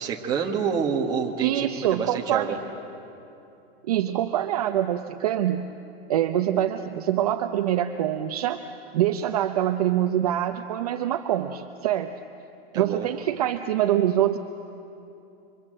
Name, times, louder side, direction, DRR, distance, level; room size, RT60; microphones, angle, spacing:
voice 1, 0.0-2.6 12.7-13.1, right 6 dB, 10° right, 0 dB, 1.4 m, -27 dB
voice 2, 1.4-2.6 3.9-5.7 6.1-8.6 8.9-12.1 12.7-14.4, right 11 dB, 40° right, 7 dB, 0.7 m, -25 dB
27.5 x 25.0 x 7.7 m, 2.8 s
supercardioid pair, 175°, 31 cm